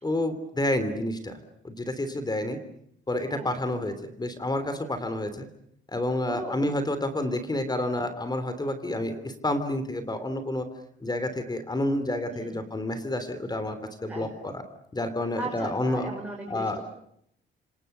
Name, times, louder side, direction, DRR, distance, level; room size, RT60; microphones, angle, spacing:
voice 1, 0.0-2.6 3.1-5.5 5.9-10.7 11.0-14.6 14.9-16.1 16.5-16.8, left 1 dB, 20° left, 10 dB, 3.2 m, -29 dB
voice 2, 6.2-6.6 12.3-12.6 14.1-14.3 15.4-16.8, right 2 dB, 10° right, 0 dB, 6.4 m, -37 dB
29.0 x 26.0 x 6.9 m, 0.72 s
cardioid pair, 90°, 20 cm